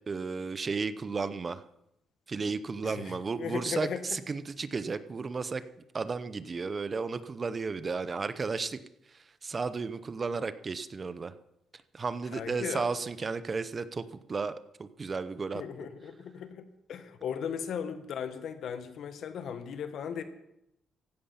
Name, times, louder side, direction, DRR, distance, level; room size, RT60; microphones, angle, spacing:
voice 1, 0.1-1.6 2.3-5.6 5.9-8.8 9.4-11.3 11.9-14.5 14.8-15.6, right 4 dB, 35° right, 13 dB, 0.8 m, -33 dB
voice 2, 2.8-4.2 12.3-12.9 15.5-20.2, left 7 dB, 70° left, 10 dB, 1.5 m, -37 dB
15.5 x 11.0 x 5.8 m, 0.83 s
cardioid pair, 95°, 0 cm